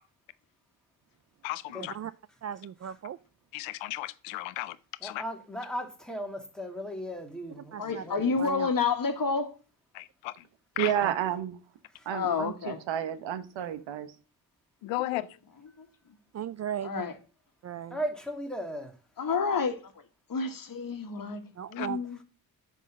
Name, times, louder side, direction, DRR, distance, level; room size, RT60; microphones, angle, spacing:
voice 1, 1.4-1.9 3.5-4.8 5.0-5.2 9.9-10.5 10.8-10.9 14.8-15.4 21.7-21.9, left 17 dB, 90° left, 0.6 m, -35 dB
voice 2, 2.4-3.2 7.7-8.0 8.4-8.7 11.0-11.1 16.3-17.0 17.6-18.0 21.6-22.0, right 9 dB, 35° right, 0.4 m, -36 dB
voice 3, 5.0-8.4 11.9-12.1 17.9-19.0, equal, ahead, 2.2 m, -37 dB
voice 4, 7.8-9.5 12.1-12.8 15.1-15.2 15.8-15.9 16.8-17.1 19.2-19.9 20.3-21.4 21.7-22.2, left 5 dB, 45° left, 1.8 m, -29 dB
voice 5, 10.8-11.6 12.1-12.5 12.9-14.1, right 10 dB, 75° right, 1.1 m, -30 dB
9.1 x 3.9 x 6.2 m
supercardioid pair, 55°, 45 cm